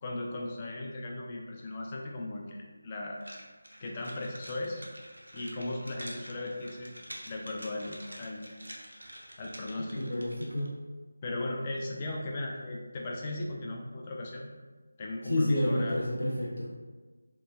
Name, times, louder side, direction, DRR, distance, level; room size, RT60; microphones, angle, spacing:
voice 1, 0.0-3.2 3.8-4.8 5.3-6.9 7.3-8.5 9.4-10.2 11.2-14.5 15.0-16.0, left 2 dB, 25° left, -2 dB, 0.3 m, -37 dB
sound 1, 3.2-10.7, equal, 80° right, 0.5 m, -47 dB
voice 2, 10.0-10.7 15.3-16.7, left 1 dB, 65° left, -5 dB, 0.6 m, -29 dB
2.9 x 2.3 x 2.2 m, 1.4 s
figure-of-eight pair, 160°, 0 cm